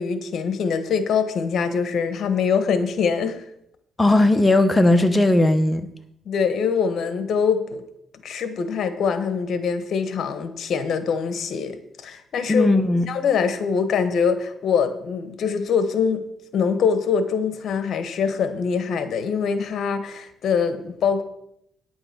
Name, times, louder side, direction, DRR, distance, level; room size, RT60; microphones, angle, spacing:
voice 1, 0.0-3.5 6.2-7.8 8.2-12.7 13.1-16.2 16.5-21.2, left 6 dB, 65° left, 1.2 m, -23 dB
voice 2, 4.0-5.9 12.5-13.1, left 2 dB, 15° left, 0.9 m, -17 dB
9.7 x 7.9 x 5.9 m
cardioid pair, 90°, 0 cm